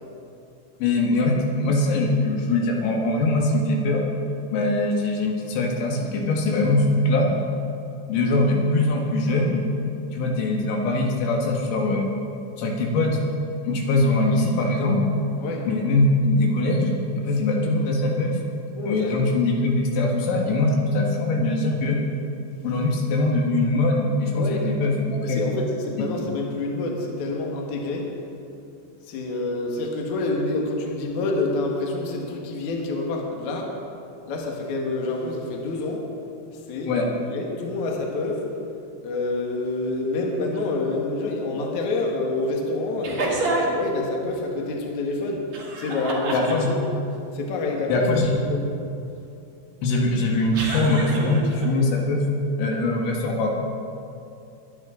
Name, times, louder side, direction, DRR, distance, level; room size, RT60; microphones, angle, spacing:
voice 1, 0.8-4.0 4.5-7.3 8.1-9.7 10.1-12.1 12.6-13.2 13.7-15.0 15.7-18.4 18.9-22.0 22.6-25.4 36.9-37.1 46.3-46.7 47.9-48.3 49.8-52.2 52.6-53.5, left 2 dB, 80° left, 0 dB, 3.9 m, -22 dB
voice 2, 18.7-19.1 24.3-24.6 25.2-28.1 29.1-33.8 34.3-36.1 36.7-38.5 39.0-45.5 45.8-46.7 47.3-48.0 48.5-48.7, left 2 dB, 55° left, 0 dB, 2.3 m, -27 dB
sound 1, 43.0-43.9 45.5-46.9 50.5-51.7, right 2 dB, 50° right, 2.0 m, -28 dB
21.5 x 10.5 x 3.8 m, 2.6 s
omnidirectional pair, 5.4 m